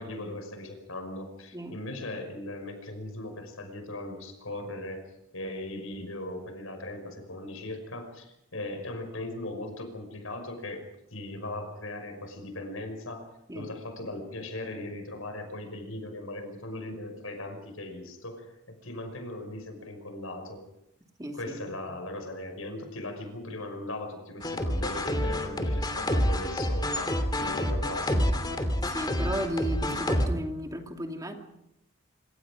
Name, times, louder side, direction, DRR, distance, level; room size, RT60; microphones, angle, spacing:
voice 1, 0.0-5.0 5.3-13.3 13.5-20.6 21.3-28.2, left 1 dB, 80° left, 6 dB, 5.7 m, -38 dB
voice 2, 21.2-21.9 27.5-27.9 28.9-31.3, equal, 15° right, 3 dB, 2.7 m, -35 dB
sound 1, 24.4-30.3, left 1 dB, 20° left, 2.7 m, -28 dB
26.5 x 25.5 x 5.1 m, 0.82 s
head